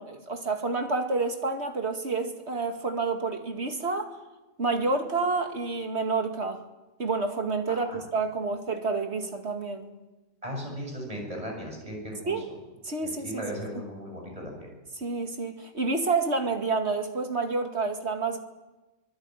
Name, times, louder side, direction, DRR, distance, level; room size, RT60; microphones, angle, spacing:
voice 1, 0.0-4.2 4.6-6.6 7.0-9.9 12.3-12.4 12.8-13.4 15.0-18.4, right 3 dB, 50° right, 5 dB, 2.5 m, -29 dB
voice 2, 7.7-8.0 10.4-12.4 13.0-14.7, equal, 25° right, 1 dB, 7.2 m, -37 dB
25.0 x 19.5 x 9.2 m, 1.1 s
omnidirectional pair, 1.4 m